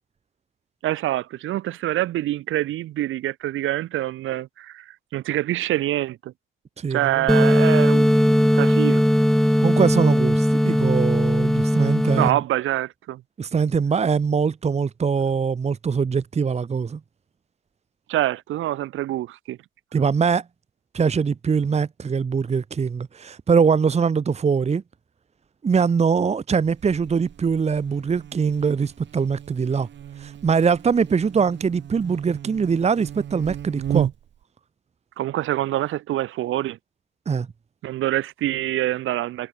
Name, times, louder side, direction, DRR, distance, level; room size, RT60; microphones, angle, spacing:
voice 1, 0.8-6.3 6.9-9.0 12.2-13.2 18.1-19.6 35.2-36.8 37.8-39.5, right 14 dB, 85° right, 5.6 m, -25 dB
voice 2, 6.8-7.5 9.6-12.4 13.4-17.0 19.9-20.4 20.9-24.8 25.6-29.9 30.2-34.1 37.3-37.5, right 6 dB, 35° right, 1.1 m, -22 dB
sound 1, 7.3-12.3, equal, ahead, 2.2 m, -18 dB
Buzz, 26.6-34.4, right 10 dB, 65° right, 5.3 m, -34 dB
cardioid pair, 90°, 20 cm